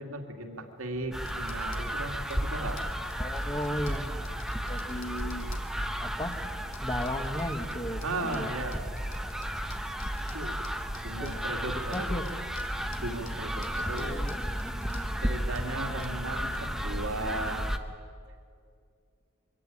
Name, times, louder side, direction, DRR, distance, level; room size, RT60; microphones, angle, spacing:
voice 1, 0.0-2.8 4.6-4.7 8.0-8.9 10.3-10.6 11.0-12.1 13.0-14.3 15.2-17.7, right 2 dB, 75° right, 4 dB, 2.5 m, -36 dB
sound 1, 0.5-16.6, left 4 dB, 60° left, 2.0 m, -54 dB
Vehicle, 1.0-17.9, equal, 35° right, 2.1 m, -45 dB
sound 2, 1.1-17.8, equal, ahead, 0.9 m, -34 dB
voice 2, 3.2-4.3 4.7-5.5 6.0-6.4 6.8-8.5 11.2-11.4 11.9-12.4 13.9-15.1, left 1 dB, 20° left, 7 dB, 1.5 m, -36 dB
23.5 x 16.0 x 9.9 m, 2.3 s
head